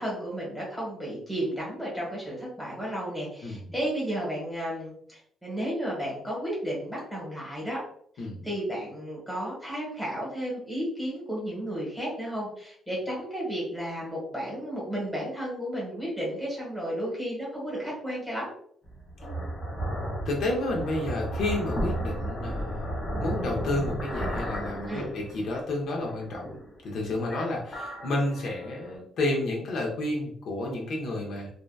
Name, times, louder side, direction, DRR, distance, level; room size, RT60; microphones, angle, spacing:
voice 1, 0.0-7.8 8.2-18.5 24.9-25.1, equal, ahead, -5 dB, 1.0 m, -33 dB
sound 1, 18.8-25.7 26.1-26.9 27.2-28.9, right 1 dB, 25° left, 0.7 m, -33 dB
voice 2, 20.3-26.5 26.8-31.5, left 2 dB, 65° left, -1 dB, 0.5 m, -31 dB
2.6 x 2.2 x 2.2 m, 0.63 s
cardioid pair, 155°, 0 cm